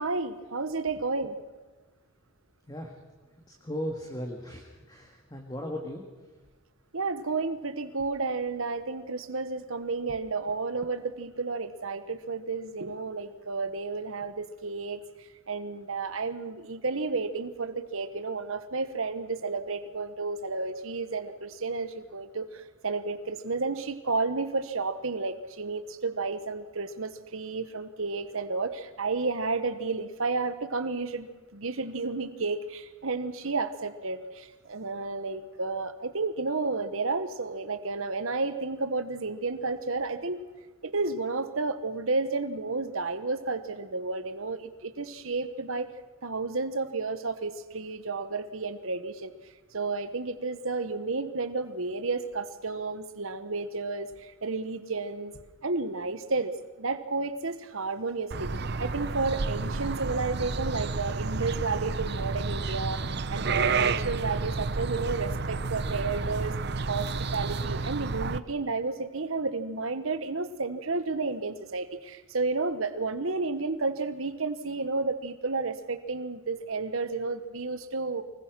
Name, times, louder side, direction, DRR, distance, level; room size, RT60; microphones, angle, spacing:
voice 1, 0.0-1.4 6.9-31.3 31.5-40.4 40.8-45.9 46.2-49.3 49.7-55.3 55.6-58.5 58.8-66.6 66.9-78.2, right 3 dB, 70° right, 11 dB, 1.2 m, -32 dB
voice 2, 2.7-3.0 3.6-6.0, equal, 20° left, 1 dB, 1.9 m, -37 dB
sound 1, 58.3-68.4, right 4 dB, 50° right, 0.7 m, -30 dB
24.5 x 21.5 x 6.2 m, 1.3 s
head